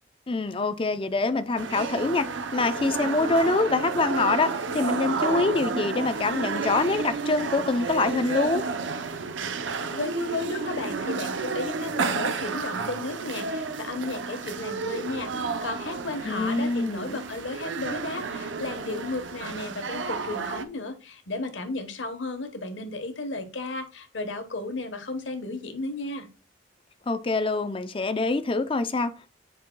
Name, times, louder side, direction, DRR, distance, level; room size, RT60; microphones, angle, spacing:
voice 1, 0.3-2.3 2.5-8.6 16.2-17.2 27.1-29.3, left 3 dB, 30° left, 0.5 m, -25 dB
sound 1, 1.6-20.7, right 4 dB, 80° right, 0.6 m, -31 dB
voice 2, 9.9-26.3, left 2 dB, 90° left, 1.1 m, -34 dB
7.7 x 5.5 x 2.2 m
head